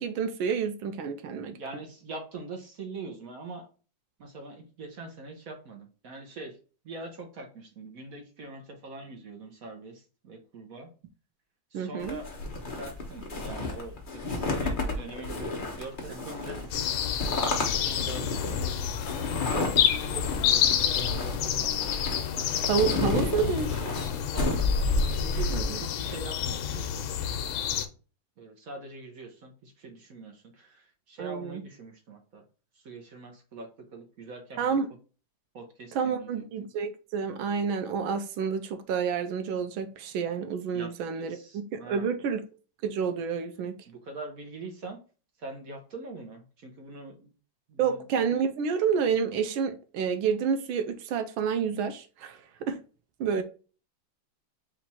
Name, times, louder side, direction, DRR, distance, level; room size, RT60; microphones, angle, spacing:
voice 1, 0.0-1.6 11.7-12.2 22.7-23.9 25.5-25.8 31.2-31.6 34.6-34.9 35.9-42.4 42.8-43.8 47.8-52.8 53.2-53.4, right 6 dB, 85° right, 1.4 m, -29 dB
voice 2, 1.5-3.7 4.2-6.6 6.8-10.9 11.7-16.7 17.8-19.7 20.1-21.9 23.0-23.3 23.6-23.9 24.3-24.8 25.2-25.5 25.8-26.8 28.4-32.4 32.8-34.8 35.5-36.4 40.7-42.1 43.9-45.0 45.4-47.3 47.7-48.0, right 3 dB, 55° right, 1.1 m, -43 dB
sound 1, 12.0-25.7, left 2 dB, 35° left, 0.9 m, -31 dB
sound 2, 16.7-27.9, left 9 dB, 85° left, 1.4 m, -29 dB
4.5 x 2.6 x 4.2 m
omnidirectional pair, 2.2 m